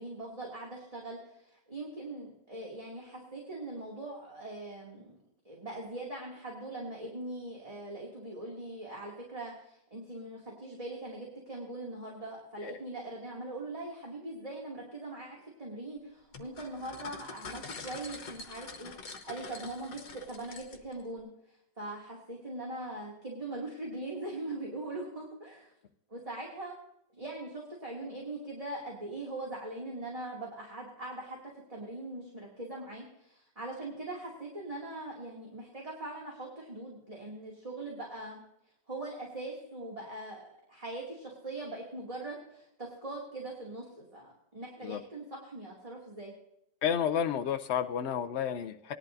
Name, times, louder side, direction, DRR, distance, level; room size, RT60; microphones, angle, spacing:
voice 1, 0.0-5.2 5.4-18.9 19.2-25.7 26.1-26.8 27.1-31.4 31.7-38.4 38.9-46.3, right 2 dB, 20° right, -3 dB, 2.5 m, -41 dB
sound 1, 16.3-21.0, left 4 dB, 65° left, 1.7 m, -45 dB
voice 2, 46.8-48.9, left 8 dB, 80° left, 7 dB, 0.6 m, -31 dB
19.5 x 11.5 x 2.7 m, 0.77 s
omnidirectional pair, 2.0 m